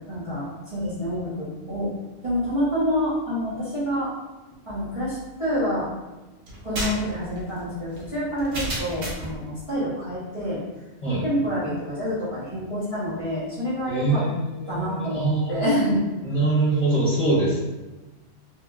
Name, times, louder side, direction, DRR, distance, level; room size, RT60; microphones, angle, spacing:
voice 1, 0.1-1.9 2.2-4.1 4.7-5.9 6.6-10.6 11.1-14.2 14.7-16.0, equal, 30° right, -11 dB, 0.9 m, -27 dB
sound 1, 6.5-9.4, equal, 75° right, 1.1 m, -32 dB
voice 2, 13.9-15.6 16.2-17.6, right 2 dB, 40° left, -9 dB, 1.1 m, -23 dB
2.9 x 2.8 x 2.3 m, 1.1 s
omnidirectional pair, 1.2 m